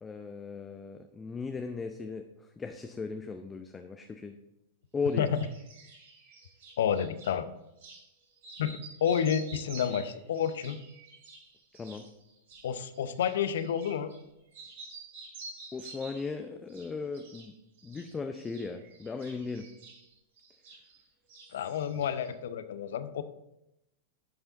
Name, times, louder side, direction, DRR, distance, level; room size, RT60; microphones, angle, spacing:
voice 1, 0.0-4.4 4.9-5.3 11.7-12.1 15.7-17.5 17.8-19.7, left 4 dB, 15° left, 6 dB, 0.6 m, -37 dB
sound 1, 5.1-7.4 7.8-8.0 8.4-14.2 14.5-16.3 16.7-17.5 17.8-21.0 21.3-22.3, right 3 dB, 65° right, 2.7 m, -50 dB
voice 2, 6.8-7.5 8.6-10.8 12.6-14.1 21.5-23.2, left 8 dB, 65° left, 12 dB, 0.6 m, -30 dB
10.5 x 5.5 x 3.8 m, 0.89 s
figure-of-eight pair, 100°, 0 cm